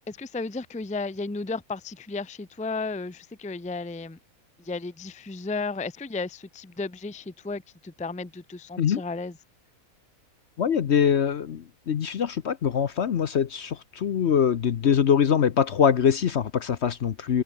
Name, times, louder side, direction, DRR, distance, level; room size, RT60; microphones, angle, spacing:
voice 1, 0.0-4.2 4.6-9.4, left 3 dB, 5° left, 0.6 m, -34 dB
voice 2, 10.6-17.4, left 8 dB, 55° left, 1.0 m, -23 dB
open air
omnidirectional pair, 1.6 m